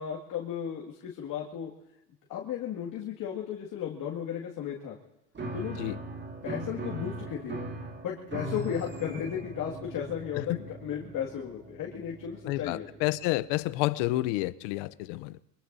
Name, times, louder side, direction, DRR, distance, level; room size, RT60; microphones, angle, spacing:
voice 1, 0.0-1.7 2.3-5.0 5.5-5.9 6.4-12.9, left 9 dB, 45° left, 2.2 m, -35 dB
Piano, 5.3-13.8, right 2 dB, 25° right, 1.9 m, -40 dB
voice 2, 12.5-15.4, left 18 dB, 60° left, 0.8 m, -30 dB
24.5 x 20.5 x 2.7 m
supercardioid pair, 105°, 47 cm